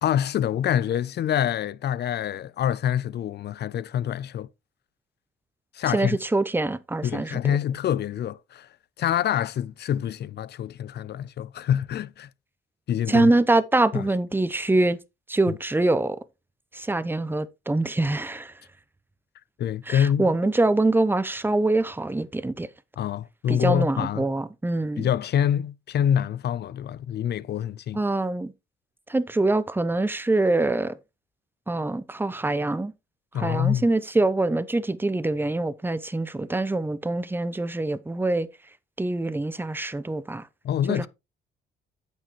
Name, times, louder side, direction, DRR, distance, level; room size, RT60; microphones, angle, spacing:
voice 1, 0.0-4.5 5.7-6.2 7.0-8.7 9.0-12.3 12.9-13.3 13.9-14.1 15.5-15.6 19.6-20.3 23.0-24.3 25.0-28.0 33.3-33.8 40.6-41.1, left 10 dB, 60° left, 0.5 m, -26 dB
voice 2, 5.9-7.6 13.1-15.0 15.3-16.2 16.7-18.5 19.9-22.7 23.5-25.1 27.9-28.5 29.1-31.0 31.7-32.9 33.3-38.5 39.0-40.5 40.9-41.1, right 2 dB, 10° right, 0.8 m, -24 dB
9.0 x 7.4 x 3.1 m
cardioid pair, 90°, 20 cm